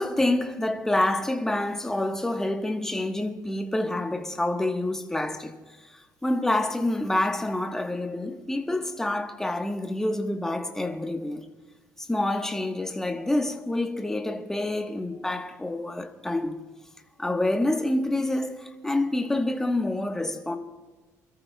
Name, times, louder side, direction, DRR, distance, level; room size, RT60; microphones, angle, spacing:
voice 1, 0.0-5.5 6.2-11.4 12.1-16.6 17.2-20.6, left 1 dB, 10° left, 1.2 m, -27 dB
28.5 x 13.5 x 2.3 m
cardioid pair, 130°, 6 cm